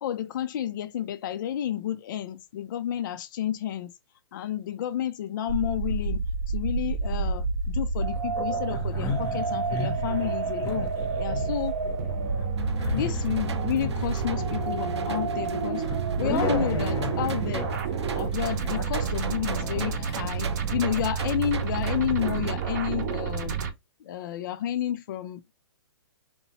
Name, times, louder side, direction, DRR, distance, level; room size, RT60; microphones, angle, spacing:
voice 1, 0.0-3.9 4.3-10.9 11.2-11.8 12.9-15.8 16.2-17.7 18.1-23.6 24.0-25.4, left 10 dB, 50° left, 0.4 m, -31 dB
sound 1, 5.5-23.7, right 5 dB, 40° right, 0.6 m, -29 dB
sound 2, 8.3-21.0, left 3 dB, 20° left, 0.7 m, -36 dB
sound 3, 12.6-22.5, right 5 dB, 85° right, 0.5 m, -38 dB
2.8 x 2.1 x 2.9 m
hypercardioid pair, 145°, 14 cm